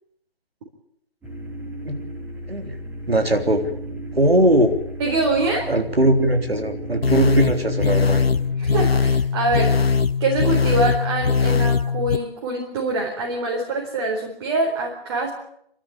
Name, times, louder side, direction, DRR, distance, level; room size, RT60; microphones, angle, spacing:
sound 1, 1.2-8.6, right 1 dB, 5° right, 3.3 m, -34 dB
voice 1, 3.1-3.6 4.1-4.7 5.7-8.2, right 1 dB, 90° right, 5 dB, 3.8 m, -19 dB
voice 2, 5.0-5.7 8.6-9.8 10.2-15.3, right 2 dB, 30° right, -2 dB, 4.1 m, -24 dB
sound 2, 7.0-12.2, left 5 dB, 85° left, 1.1 m, -20 dB
28.5 x 13.0 x 8.7 m, 0.73 s
figure-of-eight pair, 150°, 29 cm